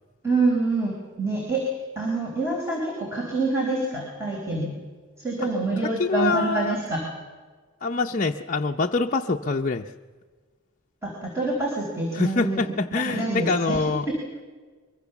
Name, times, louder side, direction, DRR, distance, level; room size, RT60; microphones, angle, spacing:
voice 1, 0.2-4.8 5.2-7.0 11.0-12.6 12.9-13.8 14.1-14.2, right 2 dB, 10° right, -2 dB, 4.5 m, -26 dB
voice 2, 6.0-6.8 7.8-9.9 12.1-14.1, left 3 dB, 35° left, 2 dB, 0.7 m, -25 dB
24.0 x 23.0 x 7.1 m, 1.5 s
head